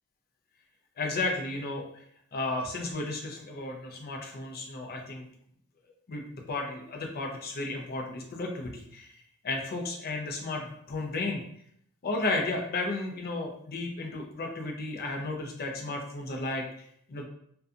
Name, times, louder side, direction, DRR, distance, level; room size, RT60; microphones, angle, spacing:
voice 1, 1.0-2.0 2.3-5.3 6.1-11.4 12.0-17.3, left 2 dB, 45° left, 2 dB, 0.5 m, -33 dB
2.6 x 2.2 x 2.4 m, 0.69 s
head